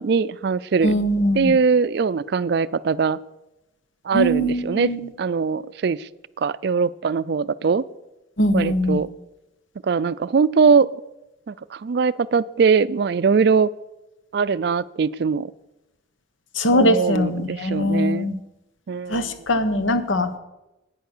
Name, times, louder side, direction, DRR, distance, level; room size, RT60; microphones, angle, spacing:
voice 1, 0.0-0.9 1.4-3.2 4.1-4.9 5.2-6.1 6.4-7.8 8.5-9.1 9.8-10.9 11.5-13.7 14.3-15.5 16.7-18.3 18.9-19.3, right 5 dB, 55° right, 17 dB, 0.4 m, -21 dB
voice 2, 0.8-1.5 4.1-5.1 8.4-9.0 16.5-18.4 19.1-20.4, left 1 dB, 85° left, 10 dB, 1.0 m, -21 dB
10.5 x 9.2 x 6.6 m, 0.96 s
head